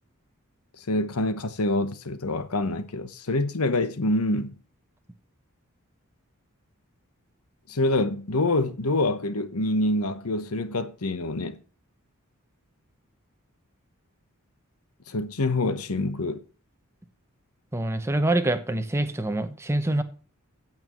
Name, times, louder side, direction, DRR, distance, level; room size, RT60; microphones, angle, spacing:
voice 1, 0.9-4.6 7.7-11.6 15.1-16.4, left 2 dB, 85° left, 1.0 m, -26 dB
voice 2, 17.7-20.0, right 1 dB, 10° right, 0.9 m, -25 dB
16.5 x 6.0 x 3.0 m
head